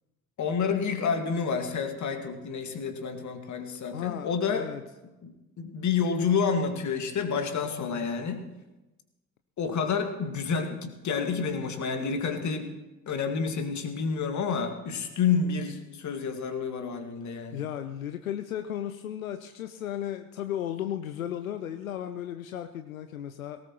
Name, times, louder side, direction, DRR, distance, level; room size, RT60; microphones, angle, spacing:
voice 1, 0.4-4.7 5.2-8.5 9.6-12.7 13.1-17.6, left 5 dB, 45° left, 6 dB, 2.0 m, -29 dB
voice 2, 3.9-4.3 4.5-4.8 17.2-23.6, left 10 dB, 80° left, 9 dB, 0.6 m, -35 dB
18.0 x 17.5 x 3.1 m, 1.0 s
figure-of-eight pair, 50°, 40 cm